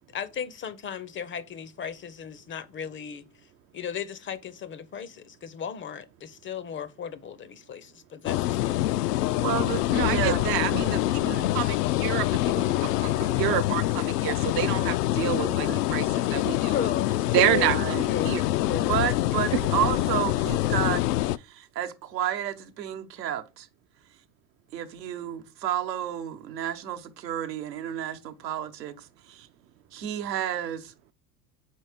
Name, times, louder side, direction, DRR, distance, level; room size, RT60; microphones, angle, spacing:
voice 1, 0.1-3.3 3.7-8.8 9.1-9.2 16.3-17.7 18.1-18.4 18.7-18.9, left 8 dB, 25° left, 0.5 m, -35 dB
sound 1, 8.3-21.4, left 15 dB, 70° left, 0.5 m, -25 dB
voice 2, 9.3-10.6 11.2-11.5 15.4-15.8 17.5-18.1 18.8-21.1 21.4-23.7 24.7-29.5 29.9-30.9, right 11 dB, 80° right, 1.0 m, -31 dB
voice 3, 9.9-11.2 11.5-16.7 17.3-18.4, right 13 dB, 30° right, 0.3 m, -28 dB
4.5 x 4.3 x 4.9 m
hypercardioid pair, 80°, 49 cm